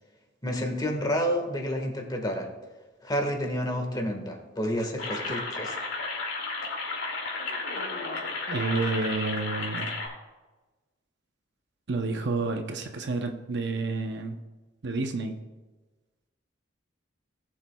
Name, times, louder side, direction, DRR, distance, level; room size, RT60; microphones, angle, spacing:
voice 1, 0.4-2.5 3.0-5.8, equal, 20° left, 3 dB, 1.6 m, -29 dB
sound 1, 5.0-10.1, left 3 dB, 85° left, 2.6 m, -33 dB
voice 2, 8.5-10.0 11.9-14.4 14.8-15.4, right 3 dB, 60° right, 5 dB, 0.7 m, -30 dB
19.5 x 7.1 x 2.3 m, 1.2 s
head